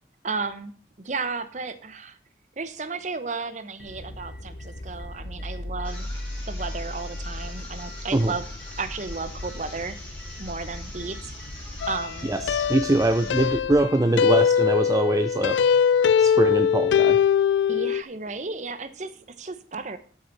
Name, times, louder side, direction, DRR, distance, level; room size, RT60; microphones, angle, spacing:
voice 1, 0.2-0.7 1.0-2.2 2.6-6.1 6.5-8.4 8.8-10.0 10.4-11.2 11.9-12.3 17.7-20.0, right 4 dB, 40° right, 12 dB, 0.8 m, -33 dB
sound 1, 3.8-13.8, left 1 dB, 65° left, 1.0 m, -38 dB
sound 2, 5.8-13.6, left 1 dB, 10° left, 3.7 m, -44 dB
sound 3, 11.8-18.0, left 7 dB, 90° left, 0.3 m, -22 dB
voice 2, 12.3-15.6 16.2-17.2, right 2 dB, 20° right, 9 dB, 0.4 m, -23 dB
11.0 x 8.0 x 4.0 m, 0.43 s
head